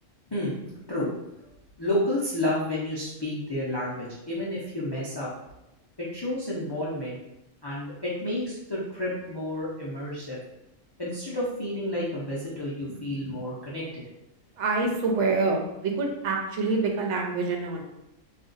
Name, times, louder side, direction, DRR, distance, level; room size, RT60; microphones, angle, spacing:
voice 1, 1.8-5.3 6.0-7.2 7.6-10.4 11.0-14.0, left 1 dB, 35° left, -7 dB, 0.4 m, -30 dB
voice 2, 14.6-17.8, right 3 dB, 70° right, 1 dB, 0.9 m, -26 dB
2.5 x 2.3 x 3.9 m, 0.91 s
omnidirectional pair, 1.4 m